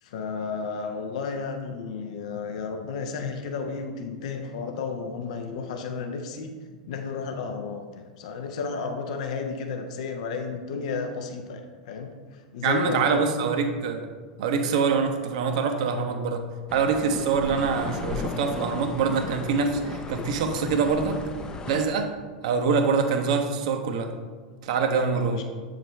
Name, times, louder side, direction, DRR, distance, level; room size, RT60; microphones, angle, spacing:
voice 1, 0.0-6.5 6.9-13.4 24.9-25.4, left 5 dB, 55° left, 5 dB, 0.7 m, -32 dB
voice 2, 12.6-14.1 14.4-16.4 16.7-21.2 21.7-22.1 22.4-24.1 24.6-25.4, right 5 dB, 55° right, 5 dB, 0.7 m, -25 dB
sound 1, 16.7-21.9, left 4 dB, 20° left, 0.5 m, -35 dB
7.6 x 5.0 x 3.1 m, 1.5 s
figure-of-eight pair, 90°, 4 cm